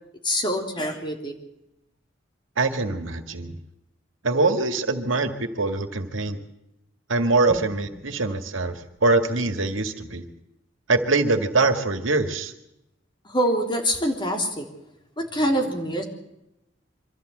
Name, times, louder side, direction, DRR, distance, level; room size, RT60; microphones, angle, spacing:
voice 1, 0.2-1.3 7.9-8.1 13.2-14.7 15.2-16.0, equal, 25° left, 2 dB, 3.5 m, -25 dB
voice 2, 2.6-3.5 4.2-6.4 7.1-10.2 10.9-12.5, right 3 dB, 85° right, 7 dB, 2.0 m, -23 dB
24.5 x 14.0 x 8.0 m, 0.88 s
head